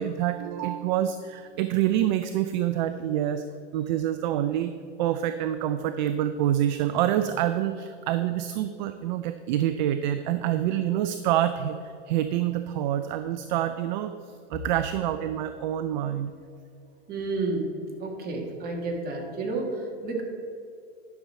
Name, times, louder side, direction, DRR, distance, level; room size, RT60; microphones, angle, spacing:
voice 1, 0.0-3.4 3.7-4.7 5.0-14.1 14.5-16.3, right 11 dB, 40° right, 10 dB, 0.4 m, -27 dB
voice 2, 17.1-17.7 18.0-20.2, right 3 dB, 25° right, 1 dB, 1.7 m, -30 dB
11.0 x 6.1 x 4.3 m, 2.5 s
hypercardioid pair, 125°, 35 cm